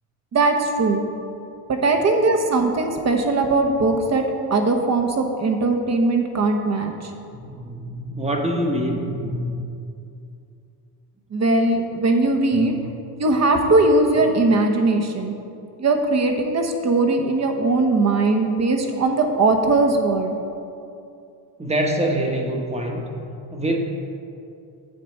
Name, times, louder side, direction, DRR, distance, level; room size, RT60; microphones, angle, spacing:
voice 1, 0.3-1.0 1.7-4.2 4.5-6.9 11.3-12.7 13.2-15.3 15.8-20.3, right 2 dB, 35° right, 4 dB, 1.1 m, -20 dB
voice 2, 7.3-9.6 12.5-12.7 21.6-23.1 23.5-23.8, right 1 dB, 15° right, 1 dB, 1.2 m, -25 dB
9.2 x 4.1 x 7.1 m, 2.6 s
cardioid pair, 95°, 44 cm